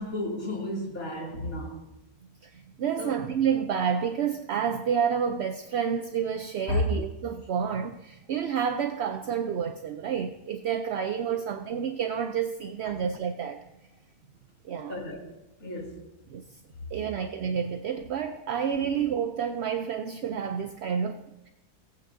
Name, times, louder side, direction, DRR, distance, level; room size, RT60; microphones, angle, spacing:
voice 1, 0.0-1.8 3.0-3.1 6.7-6.8 14.9-15.2 15.6-16.0 18.8-18.9, left 2 dB, 60° left, 3.2 m, -32 dB
voice 2, 2.4-13.6 14.6-15.0 16.3-16.5 16.9-21.5, right 7 dB, 60° right, 0.7 m, -29 dB
18.5 x 8.8 x 2.7 m
omnidirectional pair, 1.6 m